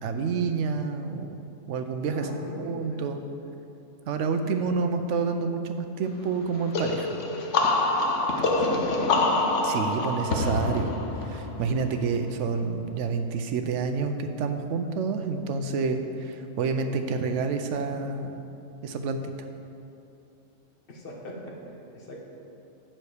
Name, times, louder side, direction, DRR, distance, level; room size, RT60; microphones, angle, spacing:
voice 1, 0.0-1.3 1.7-2.3 2.7-3.2 4.1-7.1 9.6-10.9 11.2-18.3 18.8-19.2, right 5 dB, 70° right, 7 dB, 0.9 m, -28 dB
voice 2, 2.1-3.1 8.3-8.9 20.9-22.2, left 1 dB, 45° left, -1 dB, 1.3 m, -40 dB
sound 1, 6.7-12.3, left 2 dB, 65° left, 1.1 m, -26 dB
7.3 x 6.5 x 4.9 m, 2.8 s
omnidirectional pair, 1.4 m